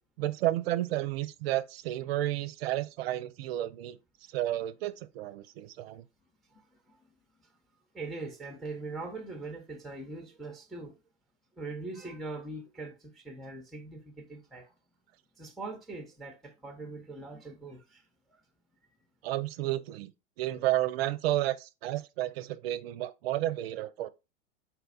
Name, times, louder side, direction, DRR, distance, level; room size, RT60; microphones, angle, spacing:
voice 1, 0.2-4.0 4.3-6.0 19.2-20.1 20.4-24.1, right 15 dB, 55° right, 0.5 m, -31 dB
voice 2, 6.5-7.0 7.9-10.9 11.6-14.7 15.4-18.0, right 3 dB, ahead, 0.7 m, -42 dB
4.2 x 2.2 x 4.0 m
hypercardioid pair, 95°, 37 cm